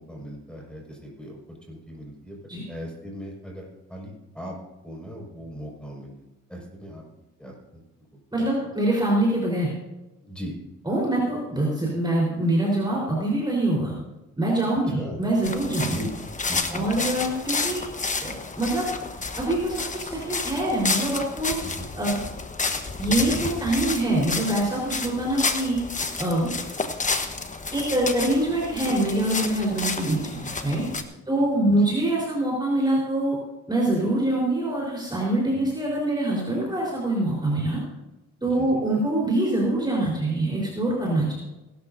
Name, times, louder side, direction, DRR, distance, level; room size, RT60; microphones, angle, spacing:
voice 1, 0.0-2.4 2.7-4.6 4.8-7.0 7.4-7.8 8.1-8.7 10.2-10.6 14.9-15.2 15.6-16.1 16.5-17.2 21.6-21.9 30.9-31.1 31.7-31.9 35.5-35.6 38.5-38.8, equal, 5° left, -1 dB, 5.6 m, -39 dB
voice 2, 8.3-9.7 10.8-13.9 14.4-16.0 16.7-17.8 18.2-18.9 19.4-21.5 22.0-22.2 23.0-25.8 26.2-26.5 27.7-30.8 31.3-33.4 33.7-37.8 38.4-41.3, right 1 dB, 15° right, -4 dB, 4.3 m, -24 dB
sound 1, 15.4-31.0, left 4 dB, 25° left, 1.2 m, -30 dB
21.0 x 12.5 x 2.7 m, 1.0 s
cardioid pair, 90°, 30 cm